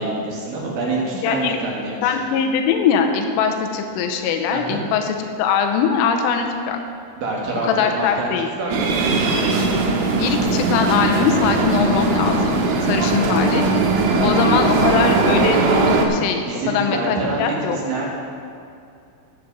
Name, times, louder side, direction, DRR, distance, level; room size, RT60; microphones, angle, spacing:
voice 1, 0.0-2.1 4.5-4.8 7.2-9.2 14.0-15.1 16.4-18.1, right 2 dB, 60° right, -3 dB, 2.7 m, -27 dB
voice 2, 1.1-1.6 2.0-6.8 7.7-8.5 10.2-13.7 14.2-17.8, left 6 dB, 85° left, 4 dB, 3.3 m, -21 dB
sound 1, 8.7-16.1, right 3 dB, 80° right, 3.4 m, -19 dB
13.0 x 8.4 x 5.3 m, 2.5 s
omnidirectional pair, 6.0 m